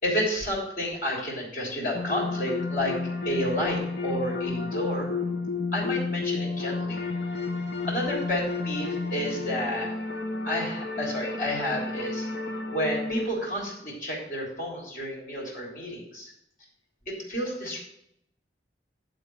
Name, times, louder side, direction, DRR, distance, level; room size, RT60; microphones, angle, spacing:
voice 1, 0.0-3.0 3.2-5.1 5.7-7.1 7.9-9.9 10.4-12.3 12.7-16.3 17.1-17.8, equal, 50° left, -2 dB, 3.4 m, -30 dB
sound 1, 1.9-13.3, left 3 dB, 80° left, 1.2 m, -31 dB
11.5 x 3.9 x 7.8 m, 0.76 s
head